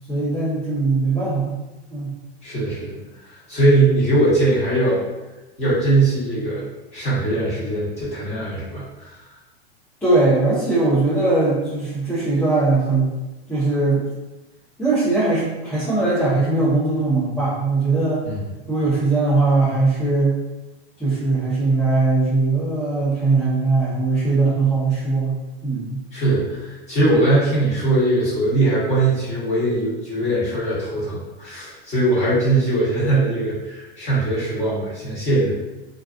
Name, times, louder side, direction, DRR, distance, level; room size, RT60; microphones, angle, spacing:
voice 1, 0.1-1.6 1.9-2.1 10.0-13.1 13.5-14.0 14.8-18.2 18.7-20.3 21.0-26.0, right 3 dB, 5° left, -14 dB, 0.6 m, -20 dB
voice 2, 2.4-3.0 3.5-5.0 5.6-6.7 6.9-9.2 18.3-18.4 26.1-35.6, right 2 dB, 20° left, -8 dB, 1.0 m, -20 dB
2.4 x 2.3 x 2.4 m, 1.1 s
hypercardioid pair, 135°, 33 cm